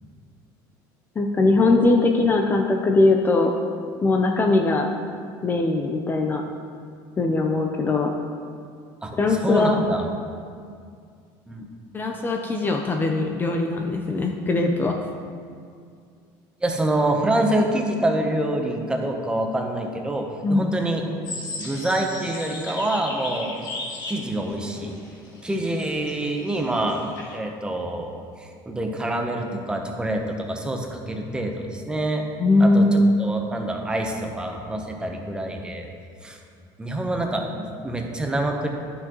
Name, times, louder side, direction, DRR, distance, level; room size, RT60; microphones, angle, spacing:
voice 1, 1.2-3.5 4.0-4.9 5.4-6.4 7.2-8.1 9.2-9.8 11.9-15.0 20.4-20.7 32.4-33.1, left 2 dB, 20° left, 3 dB, 0.5 m, -20 dB
voice 2, 9.4-10.1 11.5-11.6 16.6-23.5 24.1-24.9 25.4-27.0 27.3-28.1 28.4-32.2 32.6-32.9 33.2-35.9 36.2-36.4 36.8-38.7, right 1 dB, 10° right, 2 dB, 0.8 m, -26 dB
sound 1, 21.2-27.4, left 2 dB, 50° left, 1.9 m, -37 dB
11.5 x 6.2 x 3.0 m, 2.2 s
cardioid pair, 135°, 9 cm